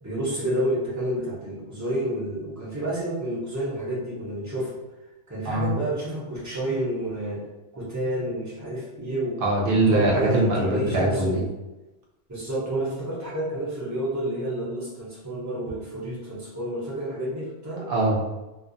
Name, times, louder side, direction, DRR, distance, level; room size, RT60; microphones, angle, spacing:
voice 1, 0.0-4.8 5.3-7.4 7.7-9.4 9.9-11.4 12.3-17.9, right 1 dB, 20° right, -8 dB, 0.6 m, -29 dB
voice 2, 9.4-11.4 17.9-18.4, right 2 dB, 55° right, -2 dB, 0.7 m, -22 dB
2.5 x 2.0 x 2.5 m, 1.1 s
omnidirectional pair, 1.3 m